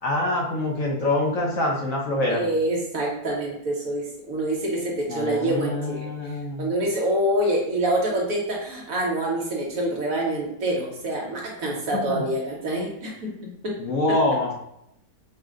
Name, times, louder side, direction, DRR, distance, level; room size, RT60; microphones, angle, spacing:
voice 1, 0.0-2.4 5.1-6.7 12.1-12.2 13.8-14.5, left 2 dB, 60° left, -1 dB, 1.0 m, -25 dB
voice 2, 2.3-13.3 13.6-13.7, right 1 dB, 60° right, -2 dB, 1.1 m, -26 dB
4.9 x 2.1 x 3.6 m, 0.80 s
omnidirectional pair, 1.8 m